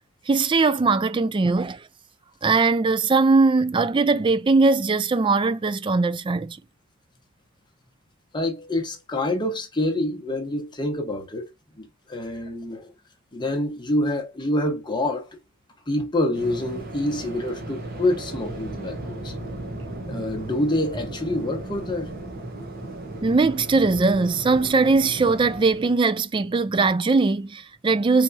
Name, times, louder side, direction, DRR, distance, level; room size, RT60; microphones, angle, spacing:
voice 1, 0.3-1.8 2.4-6.6 23.2-28.2, right 3 dB, 25° right, 0.3 m, -20 dB
voice 2, 8.3-11.5 11.8-12.9 13.3-15.2 15.9-19.3 20.1-22.1, left 1 dB, 20° left, 1.1 m, -26 dB
Waves surf, 16.3-26.0, right 1 dB, 50° right, 1.3 m, -36 dB
4.5 x 3.5 x 2.6 m
head